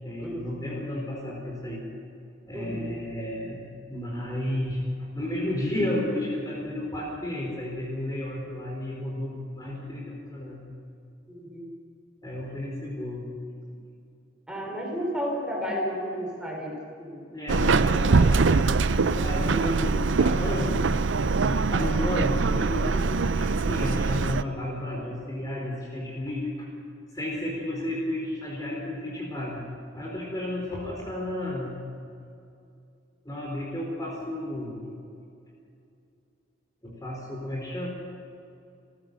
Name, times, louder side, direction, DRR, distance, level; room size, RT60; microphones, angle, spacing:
voice 1, 0.0-1.8 2.5-10.6 12.2-13.3 17.3-20.8 21.4-26.7 27.1-29.7 29.9-31.8 33.2-35.0 36.8-37.9, left 1 dB, 20° left, -3 dB, 4.2 m, -32 dB
voice 2, 2.5-2.9 11.3-11.7 13.6-13.7 14.5-17.2 19.8-20.0, equal, 5° right, -2 dB, 5.2 m, -32 dB
Subway metro underground, 17.5-24.4, right 4 dB, 70° right, 0.6 m, -23 dB
29.5 x 14.5 x 6.8 m, 2.5 s
head